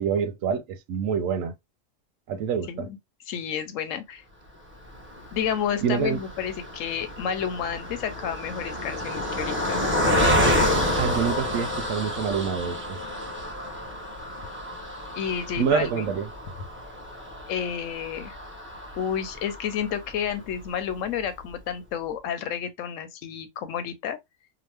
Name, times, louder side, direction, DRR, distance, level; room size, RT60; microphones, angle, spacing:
voice 1, 0.0-1.5 2.3-2.9 5.8-6.2 10.9-13.0 15.6-16.3, right 7 dB, 85° right, 1.0 m, -26 dB
voice 2, 3.3-4.2 5.3-9.8 15.1-16.1 17.5-18.4 19.0-24.2, left 8 dB, 85° left, 1.0 m, -30 dB
Car passing by, 4.9-20.4 20.9-21.0 21.2-21.4, left 1 dB, 10° right, 0.6 m, -29 dB
2.9 x 2.1 x 3.1 m
omnidirectional pair, 1.3 m